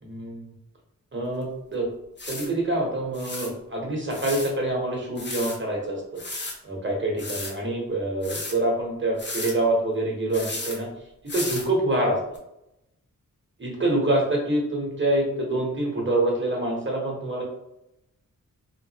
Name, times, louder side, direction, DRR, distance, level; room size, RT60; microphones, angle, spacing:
voice 1, 0.0-0.5 1.1-1.9 2.3-6.0 6.6-10.9 11.2-12.2 13.6-17.4, right 1 dB, 35° right, -2 dB, 1.0 m, -26 dB
sound 1, 1.4-1.5 2.2-2.5 3.1-3.5 4.1-4.5 5.2-5.6 6.2-6.6 7.2-7.5 8.2-8.5 9.2-9.5 10.3-10.8 11.3-11.7 12.3-12.4, left 2 dB, 30° left, 0.6 m, -34 dB
2.9 x 2.4 x 2.8 m, 0.83 s
wide cardioid pair, 90°, 34 cm